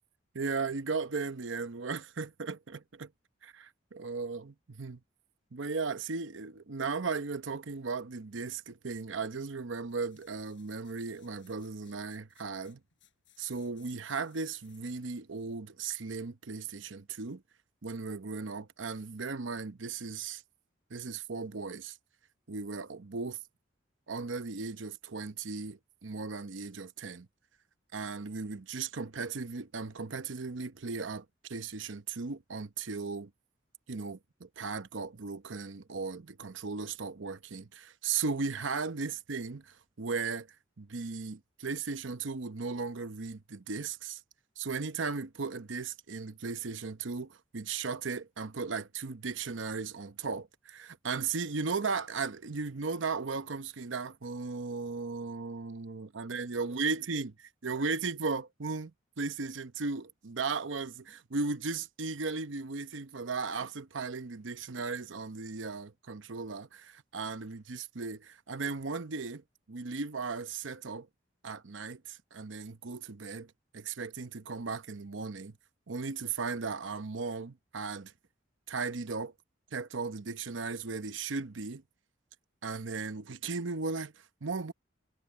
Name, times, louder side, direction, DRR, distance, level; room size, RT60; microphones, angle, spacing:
voice 1, 0.3-3.1 3.4-5.0 5.5-12.8 13.4-17.4 17.8-20.4 20.9-22.0 22.5-23.4 24.1-27.3 27.9-33.3 33.9-40.5 40.8-44.2 44.6-57.3 57.6-71.1 71.4-75.6 75.9-78.1 78.7-79.3 79.7-81.8 82.6-84.7, right 4 dB, 80° right, 0.9 m, -36 dB
sound 1, 9.8-15.1 15.6-15.7, left 13 dB, 75° left, 7.1 m, -66 dB
head